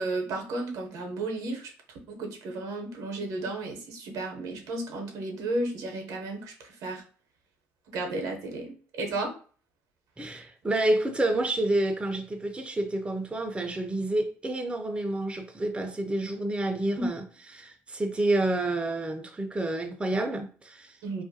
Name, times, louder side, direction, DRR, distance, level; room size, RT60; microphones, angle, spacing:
voice 1, 0.0-7.0 7.9-9.3 17.0-17.1 21.0-21.2, right 2 dB, 70° right, 0.7 m, -33 dB
voice 2, 10.2-17.2 17.5-20.9, right 1 dB, 15° right, 0.5 m, -29 dB
2.4 x 2.1 x 2.6 m
hypercardioid pair, 55°, 6 cm